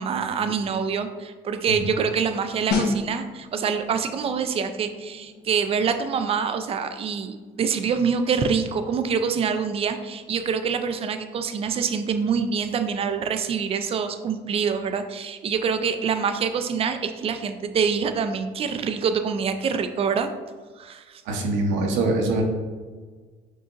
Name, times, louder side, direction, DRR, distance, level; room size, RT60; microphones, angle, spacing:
voice 1, 0.0-20.3 20.8-21.2, right 6 dB, 30° right, 8 dB, 0.4 m, -25 dB
sound 1, 2.7-13.2 13.5-13.7, left 3 dB, 60° left, 1.0 m, -35 dB
voice 2, 21.3-22.4, right 2 dB, 80° right, 2 dB, 0.9 m, -23 dB
6.3 x 2.8 x 2.5 m, 1.4 s
cardioid pair, 105°, 19 cm